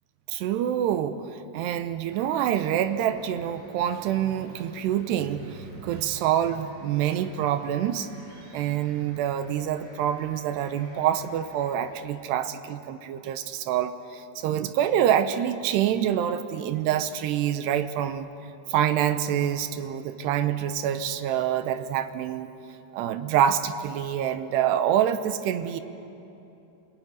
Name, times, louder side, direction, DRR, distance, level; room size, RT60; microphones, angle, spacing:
voice 1, 0.3-8.1 8.5-18.3 18.7-22.5 22.9-25.8, right 10 dB, 80° right, 11 dB, 2.9 m, -26 dB
sound 1, 2.0-11.9, equal, 45° right, 7.4 m, -52 dB
26.5 x 21.5 x 9.6 m, 2.9 s
omnidirectional pair, 5.0 m